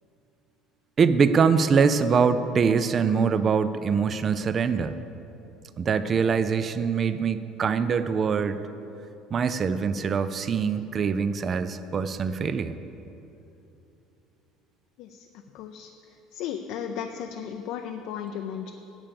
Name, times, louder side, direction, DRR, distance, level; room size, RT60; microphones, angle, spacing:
voice 1, 1.0-4.9 5.8-8.6 9.3-12.7, right 6 dB, 30° right, 12 dB, 0.4 m, -23 dB
voice 2, 15.5-15.9 16.3-18.7, left 8 dB, 65° left, 5 dB, 0.5 m, -35 dB
8.9 x 8.4 x 6.9 m, 2.9 s
cardioid pair, 145°, 0 cm